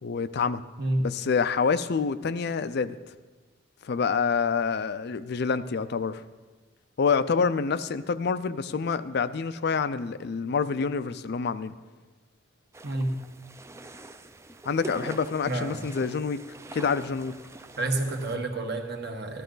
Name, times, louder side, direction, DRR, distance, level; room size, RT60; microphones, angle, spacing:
voice 1, 0.0-0.6 1.0-3.0 3.8-6.2 7.0-11.7 14.7-16.4 16.7-17.3, left 5 dB, 55° left, 13 dB, 0.4 m, -27 dB
sound 1, 12.7-18.4, right 2 dB, 15° right, 0.4 m, -44 dB
voice 2, 12.8-13.2 15.4-15.9 17.8-19.4, right 2 dB, 55° right, 3 dB, 1.4 m, -29 dB
14.5 x 12.5 x 3.9 m, 1.3 s
head